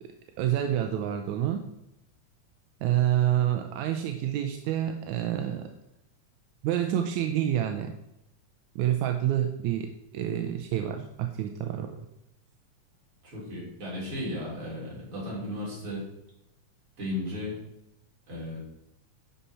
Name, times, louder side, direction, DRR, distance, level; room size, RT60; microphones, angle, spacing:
voice 1, 0.4-1.6 2.8-5.7 6.6-7.9 8.8-9.9 10.1-11.9, right 11 dB, 85° right, 5 dB, 2.0 m, -27 dB
voice 2, 13.3-16.1 17.0-17.6 18.3-18.6, left 1 dB, 45° right, -6 dB, 4.4 m, -35 dB
11.0 x 5.6 x 4.3 m, 0.85 s
omnidirectional pair, 3.4 m